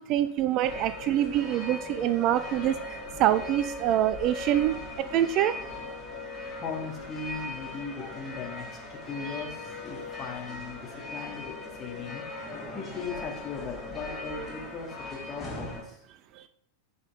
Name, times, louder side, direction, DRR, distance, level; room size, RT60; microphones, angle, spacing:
voice 1, 0.0-5.6 16.4-16.5, right 12 dB, 40° right, 13 dB, 0.5 m, -26 dB
sound 1, 0.6-15.8, left 2 dB, 10° left, 4.0 m, -39 dB
voice 2, 6.6-11.5 11.8-12.3 12.7-15.9, left 5 dB, 25° left, 0 dB, 2.4 m, -38 dB
15.0 x 5.5 x 3.7 m, 0.71 s
figure-of-eight pair, 90°, 0 cm